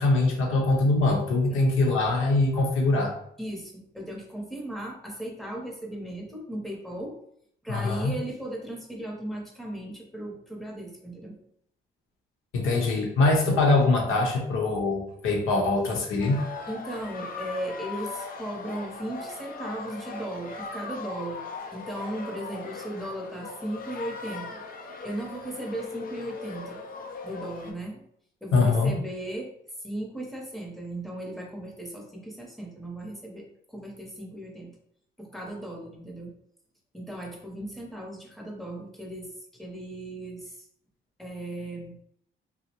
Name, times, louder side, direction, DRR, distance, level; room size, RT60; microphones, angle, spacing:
voice 1, 0.0-3.1 7.7-8.1 12.5-16.4 28.5-29.0, left 2 dB, 90° left, 0 dB, 0.7 m, -23 dB
voice 2, 3.4-7.1 7.6-11.4 16.7-21.4 21.7-24.6 25.0-26.8 27.2-28.0 28.4-29.5 29.8-34.8 35.2-36.3 36.9-39.3 39.6-40.7 41.2-42.0, right 1 dB, ahead, -1 dB, 0.7 m, -36 dB
sound 1, 16.2-27.7, left 3 dB, 45° left, 0.4 m, -39 dB
2.7 x 2.0 x 2.9 m, 0.71 s
cardioid pair, 90°, 20 cm